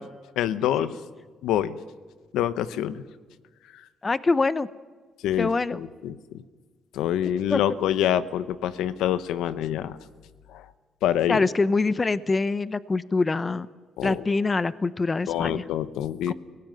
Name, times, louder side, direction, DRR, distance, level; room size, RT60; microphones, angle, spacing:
voice 1, 0.4-0.9 1.4-1.8 2.3-3.0 5.2-6.2 6.9-10.0 10.5-10.6 11.0-11.4 14.0-14.2 15.3-16.3, left 11 dB, 90° left, 14 dB, 1.0 m, -26 dB
voice 2, 4.0-4.7 5.4-5.8 7.5-7.6 11.3-13.7 14.0-15.6 16.3-16.4, left 3 dB, 25° left, 16 dB, 0.8 m, -24 dB
24.5 x 17.5 x 9.2 m, 1.5 s
cardioid pair, 90°, 0 cm